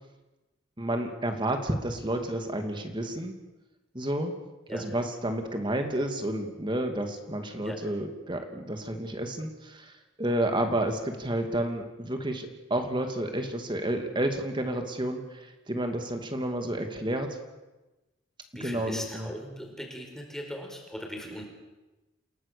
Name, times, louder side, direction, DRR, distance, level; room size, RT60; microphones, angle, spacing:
voice 1, 0.8-3.3 3.9-4.3 4.7-17.4 18.6-19.3, right 1 dB, 25° right, 5 dB, 2.4 m, -30 dB
voice 2, 18.5-21.5, equal, ahead, 1 dB, 4.6 m, -39 dB
28.5 x 17.5 x 6.8 m, 1.1 s
head